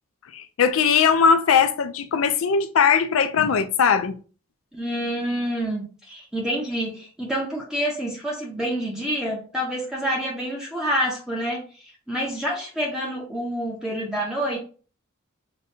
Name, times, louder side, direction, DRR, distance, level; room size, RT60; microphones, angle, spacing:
voice 1, 0.3-4.1, left 6 dB, 70° left, 0.4 m, -19 dB
voice 2, 4.7-14.6, equal, 5° right, 0.6 m, -28 dB
5.1 x 2.2 x 2.6 m
head